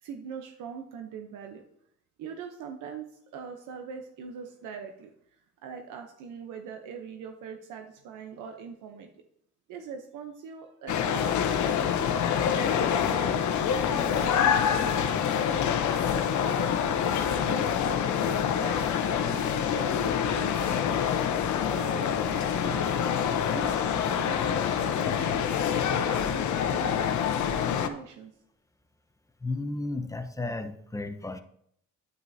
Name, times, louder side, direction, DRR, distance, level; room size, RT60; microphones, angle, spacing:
voice 1, 0.0-1.6 2.2-5.1 5.6-9.1 9.7-11.8 12.4-15.6 16.1-17.7 18.3-21.0 21.5-25.2 25.7-28.3, right 6 dB, 90° right, 4 dB, 0.9 m, -42 dB
sound 1, 10.9-27.9, left 8 dB, 70° left, 0.9 m, -26 dB
voice 2, 29.4-31.4, left 2 dB, 10° left, 8 dB, 0.9 m, -33 dB
9.4 x 9.1 x 2.7 m, 0.69 s
cardioid pair, 90°, 30 cm